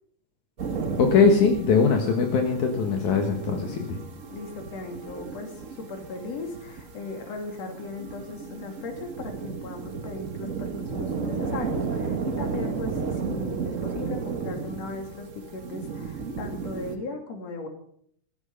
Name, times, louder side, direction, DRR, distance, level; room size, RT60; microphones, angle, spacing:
sound 1, 0.6-17.0, right 5 dB, 85° right, 0.7 m, -34 dB
voice 1, 1.0-4.0, left 5 dB, 75° left, 3 dB, 3.0 m, -21 dB
voice 2, 4.3-17.7, left 3 dB, 55° left, 4 dB, 3.7 m, -37 dB
15.5 x 14.5 x 5.4 m, 0.65 s
omnidirectional pair, 3.5 m